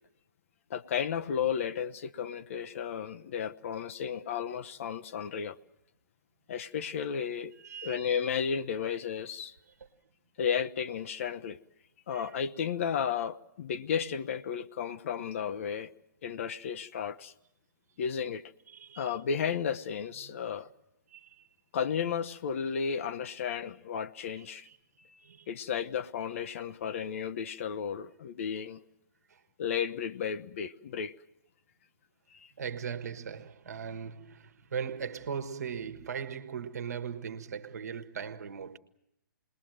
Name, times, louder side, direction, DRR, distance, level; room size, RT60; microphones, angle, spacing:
voice 1, 0.7-5.6 6.5-7.5 7.8-9.5 10.4-11.6 12.1-15.9 16.2-17.3 18.0-18.4 19.0-20.7 21.7-24.7 25.0-25.2 25.5-28.8 29.6-31.1 32.3-32.5, left 7 dB, 40° left, 0.8 m, -33 dB
voice 2, 7.5-8.1 8.9-9.0 9.7-9.9 12.1-12.4 18.7-19.2 20.1-20.3 21.1-21.5 24.4-24.8 25.2-25.6 26.4-26.5 29.3-29.4 32.6-38.8, right 7 dB, 55° right, 1.5 m, -39 dB
28.0 x 20.5 x 7.6 m
figure-of-eight pair, 125°, 10 cm